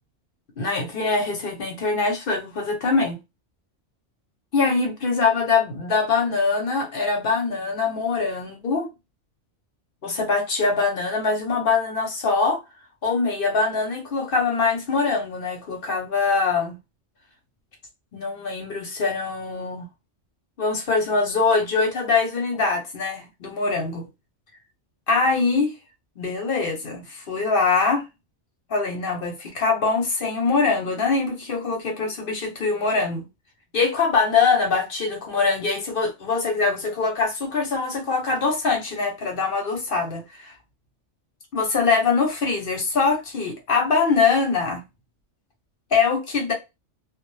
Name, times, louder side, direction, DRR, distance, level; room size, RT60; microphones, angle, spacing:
voice 1, 0.6-3.2 4.5-8.9 10.0-12.6 13.0-16.8 18.1-19.9 20.6-24.1 25.1-25.7 26.2-28.0 28.7-33.2 33.7-40.5 41.5-44.8 45.9-46.5, left 4 dB, 55° left, 0.7 m, -23 dB
2.1 x 2.0 x 3.0 m
omnidirectional pair, 1.2 m